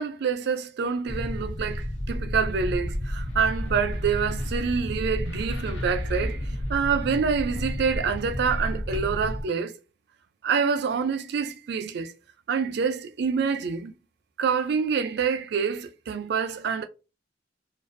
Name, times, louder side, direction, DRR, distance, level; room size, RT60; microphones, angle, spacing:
voice 1, 0.0-9.7 10.4-12.1 12.5-13.9 14.4-16.8, right 6 dB, 65° right, 0.4 m, -27 dB
sound 1, 1.1-9.4, equal, 80° left, 0.7 m, -31 dB
2.5 x 2.2 x 2.5 m
head